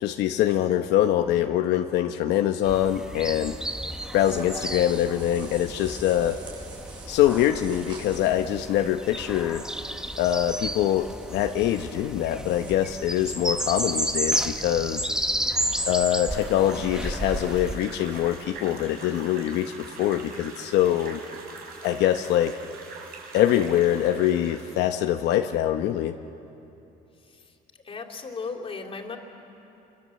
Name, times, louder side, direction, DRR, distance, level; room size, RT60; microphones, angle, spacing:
voice 1, 0.0-3.6 4.1-6.4 7.1-9.6 10.2-15.1 15.9-21.2 21.8-22.5 23.3-26.1, left 11 dB, 85° left, 6 dB, 0.9 m, -24 dB
sound 1, 2.6-17.8, right 1 dB, 5° right, 1.2 m, -32 dB
sound 2, 4.1-12.7, right 3 dB, 30° right, 7.6 m, -49 dB
sound 3, 16.3-25.0, right 4 dB, 65° right, 5.6 m, -43 dB
voice 2, 27.2-29.2, left 4 dB, 35° left, 2 dB, 3.2 m, -37 dB
28.5 x 24.5 x 7.7 m, 2.9 s
cardioid pair, 110°, 17 cm